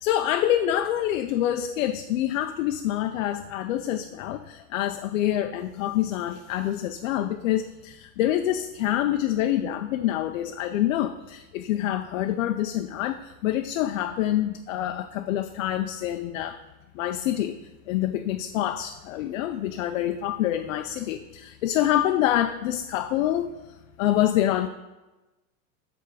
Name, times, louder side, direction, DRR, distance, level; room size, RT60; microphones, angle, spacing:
voice 1, 0.0-16.6 16.9-17.6 17.9-23.5 24.0-24.7, left 12 dB, 65° left, 7 dB, 0.5 m, -26 dB
8.0 x 3.5 x 6.1 m, 1.1 s
supercardioid pair, 175°, 43 cm